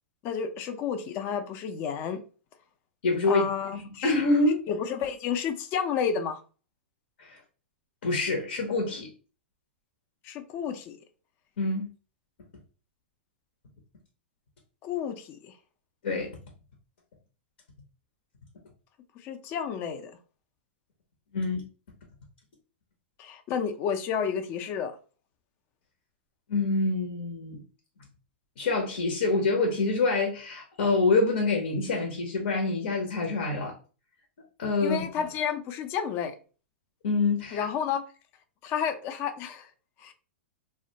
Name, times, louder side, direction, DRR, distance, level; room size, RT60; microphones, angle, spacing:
voice 1, 0.2-2.2 3.3-4.1 4.7-6.4 10.2-11.0 14.8-15.5 19.2-20.1 23.2-25.0 34.8-36.3 37.5-38.0 38.6-39.7 40.0-40.1, left 7 dB, 40° left, 0.4 m, -31 dB
voice 2, 3.0-3.5 3.7-4.6 7.2-7.4 8.0-9.1 11.6-11.9 16.0-16.4 21.3-21.6 26.5-27.6 28.6-33.7 34.6-35.1 37.0-37.7, left 3 dB, 75° left, 0.7 m, -26 dB
2.4 x 2.2 x 2.8 m
hypercardioid pair, 115°, 6 cm